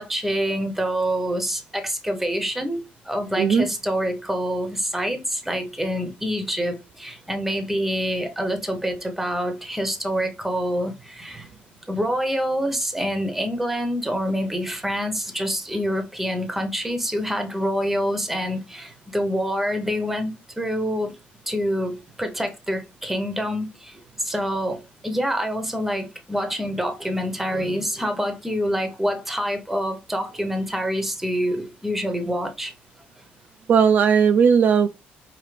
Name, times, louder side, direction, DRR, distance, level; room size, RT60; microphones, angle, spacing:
voice 1, 0.0-2.8 3.0-11.5 11.9-21.1 21.5-32.7, equal, 5° right, 0.9 m, -26 dB
voice 2, 3.4-3.7 33.7-34.9, right 6 dB, 50° right, 0.4 m, -17 dB
4.7 x 2.9 x 3.3 m
cardioid pair, 130°, 4 cm